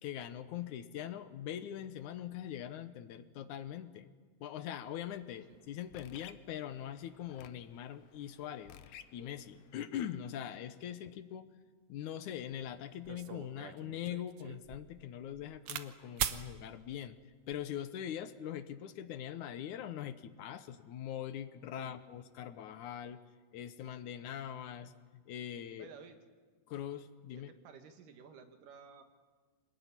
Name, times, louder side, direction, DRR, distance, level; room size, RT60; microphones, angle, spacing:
voice 1, 0.0-4.1 4.4-8.7 9.1-11.5 11.9-17.2 17.5-23.2 23.5-24.9 25.3-25.9 26.7-27.5, left 10 dB, 75° left, 11 dB, 2.3 m, -42 dB
sound 1, 4.9-9.8, left 10 dB, 90° left, 2.6 m, -57 dB
sound 2, 12.5-12.6 13.0-15.9 16.2-16.4 17.3-17.7, right 10 dB, 65° right, 1.5 m, -40 dB
voice 2, 25.8-26.2 27.4-29.0, right 6 dB, 80° right, 7 dB, 3.3 m, -54 dB
26.0 x 19.5 x 9.8 m, 1.5 s
omnidirectional pair, 3.7 m